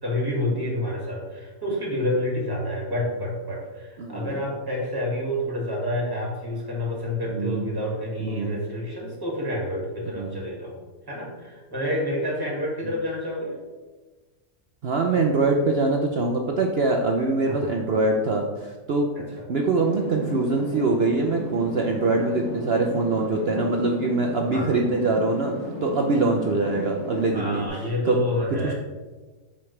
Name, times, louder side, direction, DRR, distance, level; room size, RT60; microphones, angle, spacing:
voice 1, 0.0-10.8 11.1-13.6 17.5-17.7 19.2-19.4 24.5-24.8 27.3-28.7, left 1 dB, 15° right, -3 dB, 1.8 m, -28 dB
voice 2, 4.0-4.4 7.3-7.7 8.2-8.5 10.2-10.3 14.8-19.1 19.5-25.5 25.8-27.6 28.0-28.2 28.6-28.7, right 3 dB, 65° right, 1 dB, 0.6 m, -23 dB
sound 1, 19.7-27.7, equal, 40° left, 1.6 m, -35 dB
7.4 x 5.7 x 3.2 m, 1.3 s
omnidirectional pair, 1.7 m